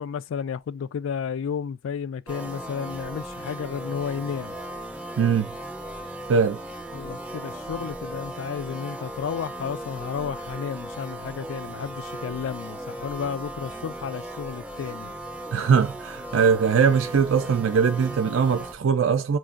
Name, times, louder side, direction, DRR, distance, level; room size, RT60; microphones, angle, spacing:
voice 1, 0.0-4.6 6.9-15.1, left 7 dB, 85° left, 0.3 m, -32 dB
sound 1, 2.3-18.7, right 1 dB, 5° right, 0.4 m, -37 dB
voice 2, 5.2-5.5 6.3-6.6 15.5-19.4, right 6 dB, 85° right, 0.4 m, -21 dB
7.4 x 2.5 x 2.4 m
head